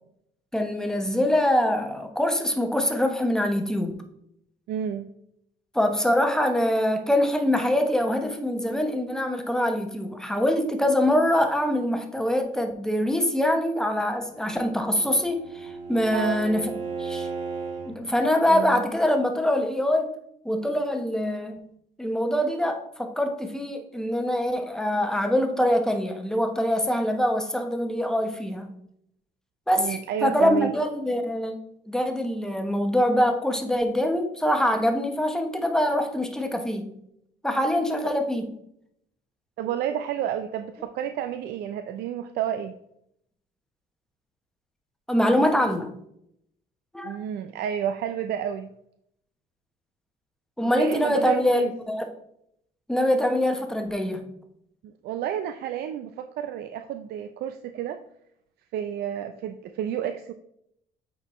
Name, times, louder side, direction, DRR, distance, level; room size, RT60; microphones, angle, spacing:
voice 1, 0.5-4.0 5.7-16.7 17.0-17.3 17.9-20.1 20.4-21.5 22.0-28.7 29.7-31.6 31.9-36.9 37.4-38.5 45.1-45.9 46.9-47.2 50.6-52.1 52.9-54.3, left 1 dB, 5° left, 4 dB, 0.9 m, -24 dB
voice 2, 4.7-5.1 16.1-16.4 18.5-18.8 29.8-30.7 39.6-42.8 47.0-48.7 50.6-51.7 54.8-58.0 58.7-60.3, right 10 dB, 70° right, 9 dB, 0.4 m, -30 dB
Bowed string instrument, 14.2-18.0, right 5 dB, 50° right, 2.1 m, -35 dB
8.5 x 4.2 x 3.1 m, 0.75 s
cardioid pair, 110°, 17 cm